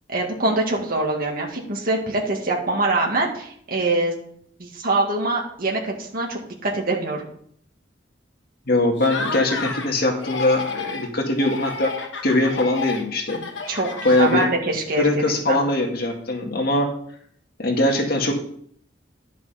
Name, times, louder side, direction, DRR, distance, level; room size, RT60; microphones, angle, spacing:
voice 1, 0.1-4.1 4.6-7.2 13.7-13.9 14.1-15.6, right 2 dB, 55° right, -1 dB, 2.1 m, -24 dB
voice 2, 8.7-11.9 12.2-13.4 14.0-14.5 14.9-16.9 17.6-18.3, left 2 dB, 55° left, 2 dB, 1.9 m, -21 dB
Laughter, 9.0-9.9 10.2-11.1 11.4-14.7, left 4 dB, 85° left, 1.5 m, -31 dB
11.0 x 6.1 x 5.8 m, 0.64 s
head